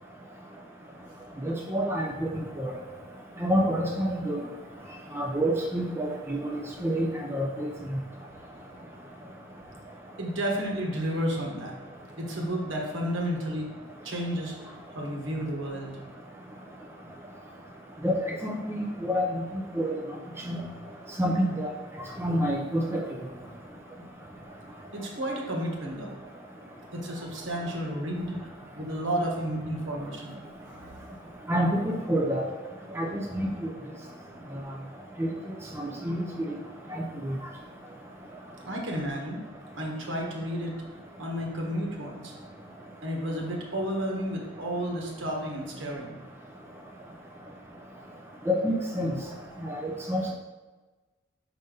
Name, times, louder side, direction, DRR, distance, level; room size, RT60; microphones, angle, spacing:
voice 1, 1.4-2.1 2.6-2.7 3.4-4.4 5.1-7.7 18.0-19.3 19.8-19.9 20.5-20.6 21.2-21.7 22.2-23.0 31.5-32.5 33.0-33.5 35.2-35.3 35.8-36.3 48.5-49.1 49.8-50.3, equal, 10° right, -1 dB, 0.6 m, -27 dB
voice 2, 10.2-11.7 12.2-13.6 14.0-16.0 20.8-20.9 24.9-26.1 26.9-28.4 28.8-30.4 38.6-39.4 39.8-40.7 41.2-42.3 43.0-46.1, equal, 65° right, -1 dB, 1.4 m, -32 dB
5.6 x 5.3 x 3.8 m, 1.2 s
head